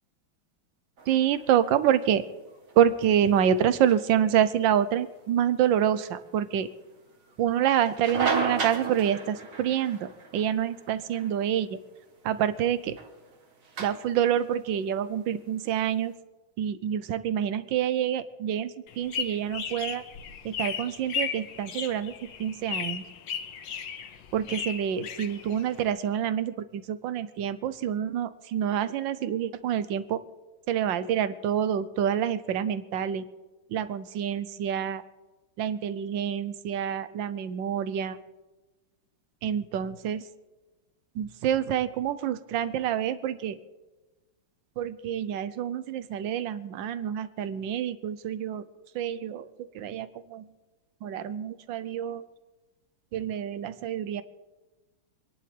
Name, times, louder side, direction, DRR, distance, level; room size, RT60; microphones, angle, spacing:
sound 1, 1.0-16.1, right 4 dB, 40° right, 1.7 m, -38 dB
voice 1, 1.1-2.2 2.8-6.7 7.4-11.8 12.2-13.0 13.8-16.1 16.6-18.7 19.0-20.0 20.4-22.1 22.4-23.0 24.3-30.2 30.7-33.2 33.7-35.0 35.6-38.2 39.4-40.2 41.2-43.6 44.8-48.6 48.9-49.5 49.7-50.4 51.0-52.2 53.1-54.2, right 9 dB, 70° right, 14 dB, 1.3 m, -27 dB
sound 2, 18.9-25.9, left 6 dB, 65° left, 1.6 m, -35 dB
27.5 x 11.0 x 3.4 m, 1.2 s
omnidirectional pair, 2.3 m